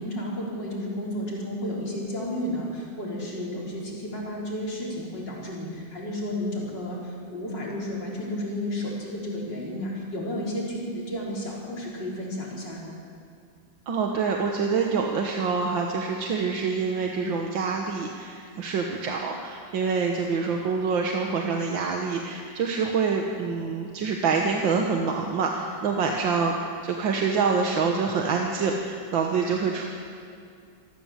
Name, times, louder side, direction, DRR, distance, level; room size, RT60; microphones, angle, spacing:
voice 1, 0.0-13.0, left 1 dB, 65° left, -4 dB, 4.9 m, -32 dB
voice 2, 13.9-29.9, right 5 dB, 90° right, 2 dB, 2.1 m, -26 dB
26.0 x 14.0 x 7.5 m, 2.3 s
omnidirectional pair, 2.0 m